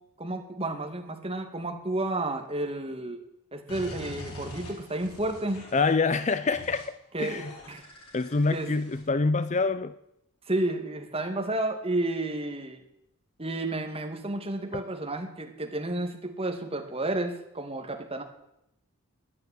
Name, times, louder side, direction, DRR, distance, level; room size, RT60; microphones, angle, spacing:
voice 1, 0.2-3.2 3.5-5.6 7.1-7.8 8.5-8.7 10.5-12.8 13.4-18.2, right 2 dB, 25° right, 2.4 m, -31 dB
sound 1, 3.7-5.9 6.5-6.9 7.2-9.0, equal, 85° left, 5.6 m, -44 dB
voice 2, 5.7-7.5 8.1-10.0 14.7-14.8, left 4 dB, 30° left, 0.5 m, -26 dB
14.5 x 10.5 x 9.2 m
head